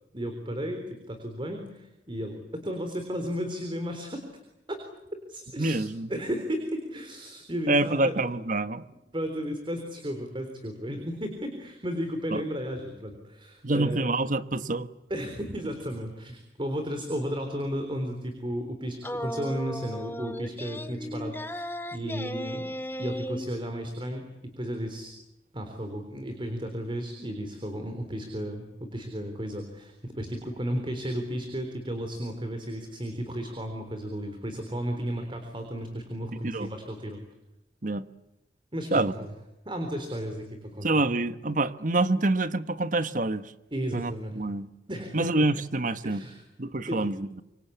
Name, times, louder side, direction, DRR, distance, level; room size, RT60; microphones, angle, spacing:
voice 1, 0.1-4.2 4.7-4.8 5.3-5.8 6.1-8.2 9.1-14.1 15.1-21.7 21.9-22.6 23.0-25.1 25.5-37.2 38.7-39.3 39.7-40.9 43.7-44.4 44.9-45.4 46.0-46.4 46.9-47.1, equal, 30° right, 3.8 m, -34 dB
voice 2, 5.6-6.1 7.7-8.8 12.3-12.4 13.6-14.9 36.4-36.7 37.8-38.0 38.9-39.1 40.8-43.4 43.9-44.7 45.1-46.2 46.6-47.4, right 2 dB, 50° right, 1.3 m, -26 dB
sound 1, 19.0-23.5, equal, 15° left, 1.3 m, -36 dB
27.0 x 24.5 x 8.6 m
head